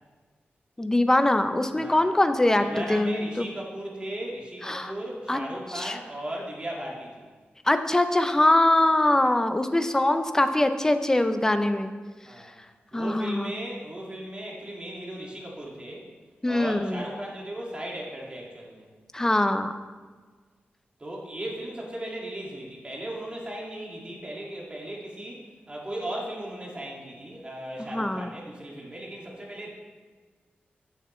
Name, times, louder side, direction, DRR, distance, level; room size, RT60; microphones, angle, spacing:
voice 1, 0.8-3.5 4.7-4.9 5.3-5.4 5.7-6.0 7.7-11.9 12.9-13.5 16.4-17.0 19.1-19.7 27.9-28.3, left 1 dB, 15° left, 8 dB, 0.6 m, -23 dB
voice 2, 1.7-2.2 2.6-7.3 12.3-12.5 12.9-16.1 16.4-18.9 21.0-29.7, right 1 dB, 25° right, -3 dB, 2.1 m, -37 dB
14.5 x 7.0 x 3.2 m, 1.4 s
wide cardioid pair, 115°, 4 cm